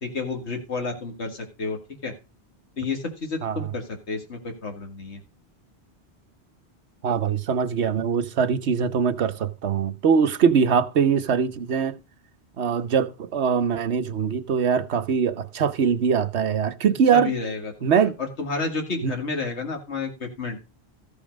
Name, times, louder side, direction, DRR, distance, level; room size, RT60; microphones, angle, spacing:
voice 1, 0.0-2.1 2.8-5.2 17.1-20.6, left 4 dB, 85° left, 2.2 m, -31 dB
voice 2, 3.4-3.7 7.0-12.0 12.6-17.3 17.8-18.2 19.0-19.1, right 6 dB, 80° right, 1.2 m, -22 dB
14.0 x 5.5 x 5.2 m
omnidirectional pair, 1.1 m